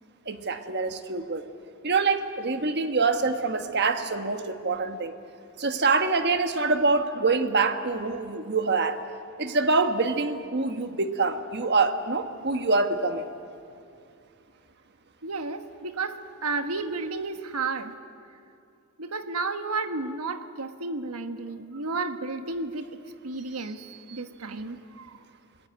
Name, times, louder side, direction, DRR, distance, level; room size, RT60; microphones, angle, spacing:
voice 1, 0.3-1.4 1.8-5.2 5.6-9.0 9.4-13.3 24.1-24.2 24.5-24.6, right 3 dB, 50° right, 8 dB, 1.3 m, -25 dB
voice 2, 15.2-18.0 19.0-22.9 23.2-23.8 24.1-25.2, right 3 dB, 80° right, 8 dB, 1.4 m, -32 dB
25.0 x 20.0 x 9.5 m, 2.5 s
head